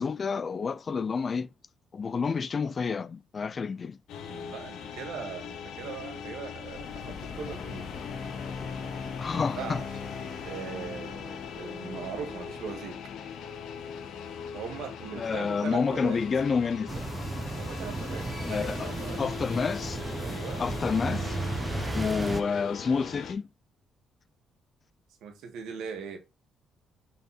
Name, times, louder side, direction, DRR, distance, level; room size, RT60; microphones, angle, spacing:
voice 1, 0.0-1.5 1.9-4.0 9.2-9.8 15.2-17.1 18.4-18.9 19.2-20.0 20.6-21.4 21.9-23.5, left 5 dB, 40° left, 0.4 m, -29 dB
sound 1, 4.1-23.3, left 8 dB, 85° left, 1.1 m, -41 dB
voice 2, 4.3-7.9 9.3-9.8 10.4-13.0 14.5-16.2 17.6-19.2 20.2-20.6 21.8-22.1 25.2-26.2, right 6 dB, 85° right, 1.7 m, -40 dB
sound 2, 6.6-17.1, left 5 dB, 60° left, 2.0 m, -42 dB
sound 3, 16.9-22.4, right 2 dB, 20° right, 0.9 m, -34 dB
5.2 x 4.6 x 4.1 m
cardioid pair, 90°, 0 cm